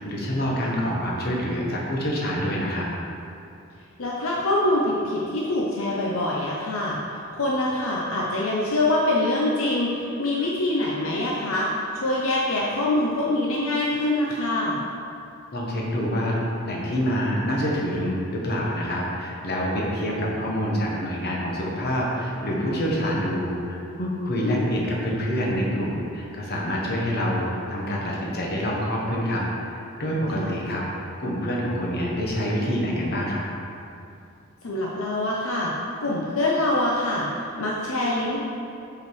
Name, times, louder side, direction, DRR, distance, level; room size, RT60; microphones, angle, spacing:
voice 1, 0.0-2.9 15.5-16.3 16.6-33.4, equal, 45° left, -3 dB, 1.2 m, -26 dB
voice 2, 4.0-14.8 24.4-24.7 30.3-30.6 34.6-35.7 36.0-38.4, left 1 dB, 70° left, -3 dB, 0.7 m, -25 dB
5.4 x 5.1 x 4.7 m, 2.6 s
head